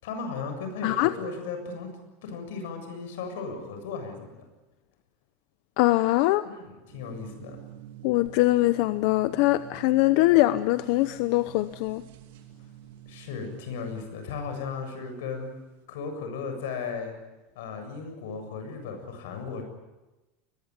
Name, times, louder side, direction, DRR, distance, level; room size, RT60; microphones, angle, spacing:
voice 1, 0.0-1.9 2.2-4.4 6.4-7.6 13.1-15.6 15.9-17.1 17.6-19.6, left 5 dB, 90° left, 6 dB, 7.5 m, -36 dB
voice 2, 0.8-1.1 5.8-6.4 8.0-12.0, left 18 dB, 60° left, 13 dB, 0.8 m, -22 dB
sound 1, 6.9-14.0, right 11 dB, 90° right, 2.7 m, -48 dB
21.5 x 21.0 x 9.9 m, 1.1 s
supercardioid pair, 165°, 0 cm